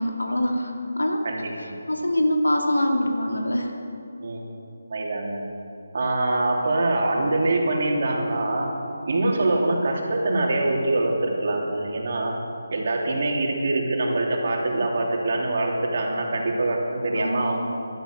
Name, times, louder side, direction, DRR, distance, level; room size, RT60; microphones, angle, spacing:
voice 1, 0.0-1.2 1.6-3.7 17.2-17.7, left 1 dB, 85° left, 2 dB, 2.3 m, -24 dB
voice 2, 1.2-1.7 4.2-4.4 4.9-5.4 5.9-8.7 9.1-12.4 12.7-17.6, right 2 dB, 55° right, 0 dB, 2.9 m, -24 dB
15.0 x 12.0 x 6.5 m, 2.7 s
figure-of-eight pair, 155°, 0 cm